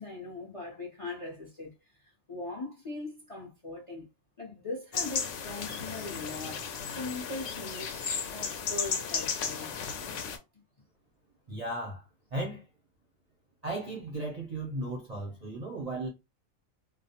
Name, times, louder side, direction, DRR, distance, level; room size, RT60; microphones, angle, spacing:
voice 1, 0.0-4.1 4.4-6.7 6.9-9.7, left 2 dB, 40° left, 0.5 m, -40 dB
sound 1, 4.9-10.4, left 6 dB, 70° left, 0.8 m, -34 dB
voice 2, 11.5-12.0 12.3-12.6 13.6-16.1, right 2 dB, 45° right, 0.5 m, -35 dB
2.3 x 2.0 x 2.7 m
omnidirectional pair, 1.4 m